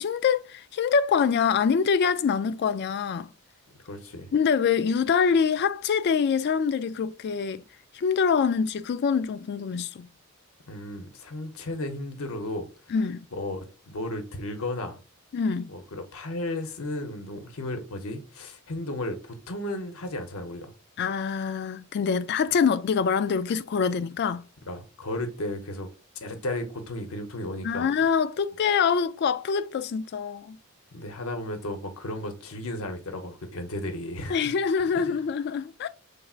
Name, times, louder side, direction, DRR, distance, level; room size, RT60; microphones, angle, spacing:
voice 1, 0.0-3.3 4.3-7.6 7.9-10.1 12.9-13.3 15.3-15.7 21.0-24.5 27.6-30.6 34.3-35.9, left 6 dB, 50° left, 0.3 m, -25 dB
voice 2, 3.8-4.3 10.7-12.7 13.3-15.0 15.7-20.7 24.7-25.9 26.1-27.9 30.9-34.5 34.9-35.1, left 1 dB, 70° left, 0.8 m, -34 dB
5.7 x 3.3 x 2.4 m
head